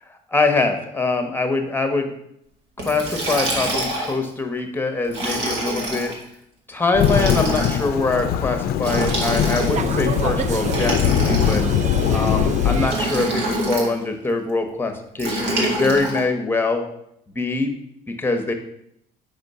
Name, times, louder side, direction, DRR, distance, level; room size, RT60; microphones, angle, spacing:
voice 1, 0.3-2.1 2.8-6.1 6.7-11.6 12.1-16.9 17.3-17.7 18.1-18.5, left 3 dB, 10° left, 6 dB, 1.0 m, -23 dB
Liquid, 2.8-4.2 5.1-6.1 7.0-7.9 8.8-9.9 10.7-11.9 12.8-13.9 15.2-16.2, right 1 dB, 85° right, 1.9 m, -26 dB
Thunderstorm / Rain, 6.9-12.9, left 9 dB, 60° left, 0.4 m, -21 dB
sound 1, 8.8-13.8, right 6 dB, 45° right, 0.5 m, -29 dB
5.4 x 4.4 x 5.5 m, 0.76 s
cardioid pair, 110°, 17 cm